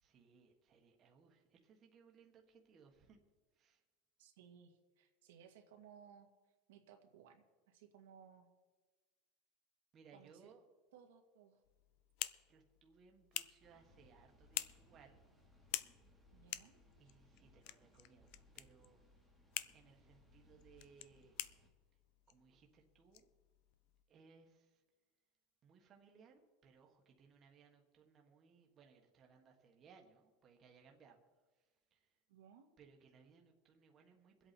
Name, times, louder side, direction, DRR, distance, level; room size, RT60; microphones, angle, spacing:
voice 1, 0.0-3.2 3.5-3.8 9.9-10.6 12.5-15.2 17.0-19.0 19.7-21.3 22.3-23.3 24.1-24.8 25.6-31.2 31.5-32.2 32.8-34.5, right 5 dB, 25° right, 2 dB, 1.4 m, -65 dB
voice 2, 4.2-6.3 6.7-8.5 10.1-10.5 10.9-11.6 16.3-16.8 32.3-32.7, right 8 dB, 85° right, 3 dB, 1.9 m, -61 dB
sound 1, 11.6-24.0, left 16 dB, 50° left, 0.5 m, -49 dB
sound 2, 13.6-21.7, left 1 dB, ahead, 1.7 m, -68 dB
23.5 x 8.2 x 4.4 m, 1.3 s
supercardioid pair, 165°, 0 cm